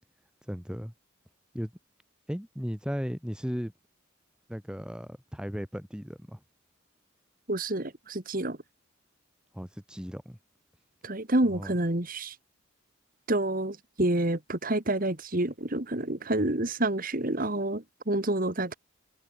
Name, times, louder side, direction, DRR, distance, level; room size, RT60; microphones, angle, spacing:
voice 1, 0.5-0.9 1.5-1.7 2.3-3.7 4.5-6.4 9.5-10.4 11.5-11.7, equal, 5° right, 2.4 m, -36 dB
voice 2, 7.5-8.6 11.0-12.3 13.3-18.7, right 1 dB, 40° right, 2.0 m, -28 dB
head